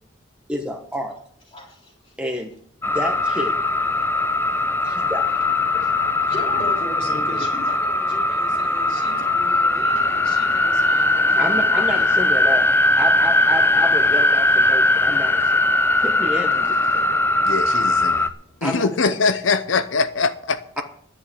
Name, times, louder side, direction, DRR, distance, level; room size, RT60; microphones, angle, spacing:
voice 1, 0.5-1.1 2.2-2.5 2.9-3.6 4.8-5.3 11.4-15.7 16.0-17.1 18.6-19.2 20.8-20.9, equal, 5° right, 1.1 m, -29 dB
voice 2, 1.5-2.2 4.1-12.0, equal, 30° left, 3.7 m, -39 dB
sound 1, 2.8-18.3, left 2 dB, 10° left, 0.5 m, -19 dB
voice 3, 17.4-18.3 18.6-20.6, left 4 dB, 90° left, 0.7 m, -22 dB
10.0 x 8.4 x 8.1 m
head